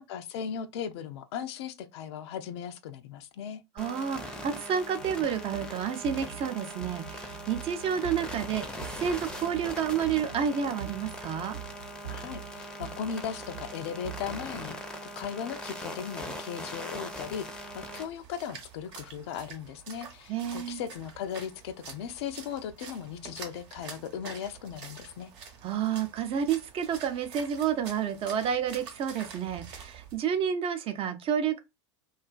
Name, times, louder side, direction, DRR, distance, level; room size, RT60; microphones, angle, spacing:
voice 1, 0.0-3.6 12.0-14.8 15.2-25.3, left 8 dB, 60° left, 0.4 m, -37 dB
sound 1, 3.8-18.0, equal, 5° left, 0.6 m, -41 dB
voice 2, 3.8-11.6 20.3-20.8 25.6-31.6, right 8 dB, 35° right, 0.5 m, -30 dB
sound 2, 5.0-14.5, right 9 dB, 85° right, 0.6 m, -45 dB
Splash splatter, 17.4-30.2, right 5 dB, 60° right, 0.9 m, -47 dB
2.4 x 2.3 x 2.3 m
hypercardioid pair, 85°, 16 cm